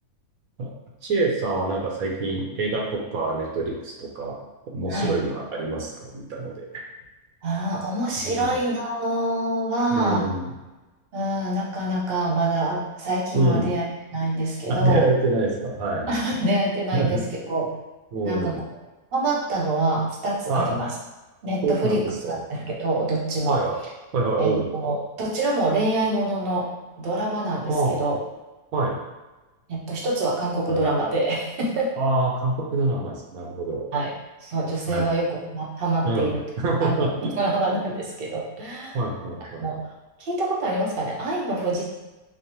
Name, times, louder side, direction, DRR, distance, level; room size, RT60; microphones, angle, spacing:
voice 1, 1.0-4.4 4.7-6.8 8.2-8.6 9.9-10.5 13.3-13.7 14.7-16.3 16.9-17.2 18.1-18.6 20.5-20.7 21.6-22.4 23.5-23.7 24.1-24.6 27.7-28.0 28.7-29.0 30.7-30.9 32.0-33.9 34.9-35.1 36.0-37.4 38.9-39.7, right 2 dB, 75° right, -1 dB, 1.1 m, -25 dB
voice 2, 7.4-10.3 11.1-13.8 14.1-15.0 15.9-17.7 18.2-18.6 19.1-20.9 21.4-23.6 24.4-26.7 27.0-28.2 29.7-31.9 33.9-34.1 34.4-36.4 36.8-39.0 39.6-39.9 40.2-41.9, right 2 dB, 55° right, -2 dB, 0.7 m, -26 dB
5.3 x 2.1 x 2.8 m, 1.1 s
omnidirectional pair, 1.6 m